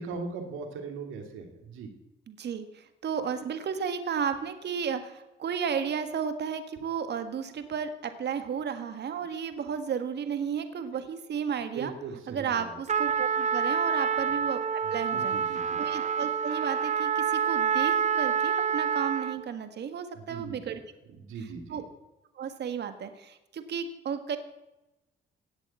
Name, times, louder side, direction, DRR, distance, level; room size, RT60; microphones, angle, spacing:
voice 1, 0.0-1.9 11.7-12.8 15.1-15.8 20.1-20.7 21.2-21.8, right 4 dB, 85° right, 5 dB, 2.8 m, -39 dB
voice 2, 2.3-11.9 12.3-14.6 14.9-15.4 15.8-20.8 21.7-21.8 22.4-24.4, right 7 dB, 60° right, 9 dB, 1.7 m, -33 dB
Trumpet, 12.9-19.5, right 7 dB, 35° right, 0.8 m, -27 dB
17.5 x 7.0 x 8.5 m, 0.97 s
cardioid pair, 90°, 20 cm